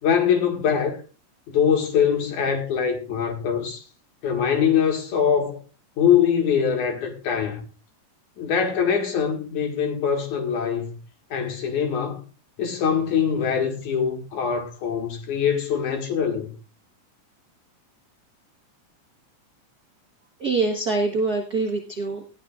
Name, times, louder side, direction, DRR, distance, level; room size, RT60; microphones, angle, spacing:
voice 1, 0.0-1.0 1.5-3.8 4.2-5.6 6.0-7.6 8.4-11.0 11.3-12.2 12.6-16.5, left 7 dB, 65° left, 3.1 m, -23 dB
voice 2, 20.4-22.3, right 3 dB, 50° right, 1.1 m, -24 dB
18.5 x 12.0 x 2.4 m
omnidirectional pair, 3.8 m